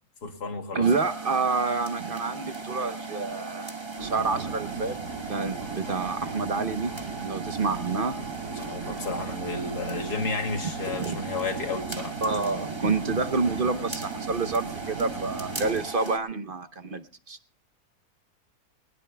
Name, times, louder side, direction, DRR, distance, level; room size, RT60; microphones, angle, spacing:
voice 1, 0.2-0.9 8.5-12.2, left 3 dB, 80° left, 4 dB, 2.9 m, -32 dB
voice 2, 0.7-3.7 4.0-5.0 5.3-6.9 7.2-8.2 11.0-11.2 12.2-17.4, right 4 dB, 40° right, 10 dB, 0.9 m, -28 dB
sound 1, 0.8-16.2, right 4 dB, 20° right, 1.2 m, -38 dB
sound 2, 4.0-15.8, right 5 dB, 80° right, 2.6 m, -38 dB
21.0 x 19.5 x 2.2 m, 0.40 s
omnidirectional pair, 1.7 m